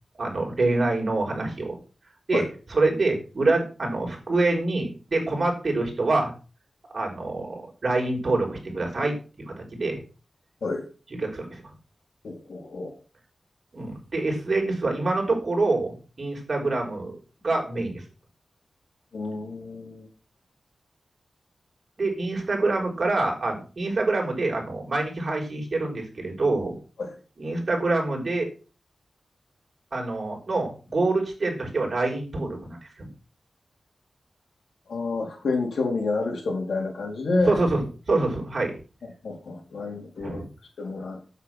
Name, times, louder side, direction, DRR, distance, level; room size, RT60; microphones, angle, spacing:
voice 1, 0.2-1.8 2.3-2.4 2.7-6.3 6.9-10.0 11.2-11.6 13.7-17.1 17.4-18.0 22.0-26.8 27.4-28.5 29.9-33.1 37.5-38.7 39.8-39.9 40.2-40.5, right 2 dB, 45° right, 0 dB, 5.3 m, -26 dB
voice 2, 12.2-12.9 19.1-20.1 27.0-27.1 34.9-37.6 39.2-40.4 40.8-41.2, left 3 dB, 90° left, 1 dB, 4.2 m, -29 dB
9.6 x 8.4 x 6.2 m, 0.35 s
wide cardioid pair, 115°, 0 cm